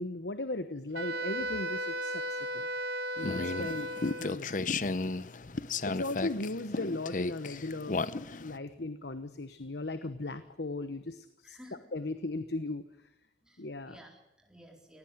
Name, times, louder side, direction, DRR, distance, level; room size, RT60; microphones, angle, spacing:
voice 1, 0.0-2.7 3.2-4.7 5.8-8.0 8.4-11.6 11.9-13.1 13.6-14.0, left 2 dB, 70° left, 11 dB, 1.1 m, -37 dB
Wind instrument woodwind instrument, 0.9-4.4, right 1 dB, 70° right, 1.6 m, -35 dB
sound 1, 3.2-8.6, left 3 dB, 45° left, 0.7 m, -34 dB
voice 2, 11.4-11.9 13.4-15.0, equal, 5° right, 1 dB, 3.9 m, -55 dB
19.0 x 17.5 x 7.9 m, 0.87 s
head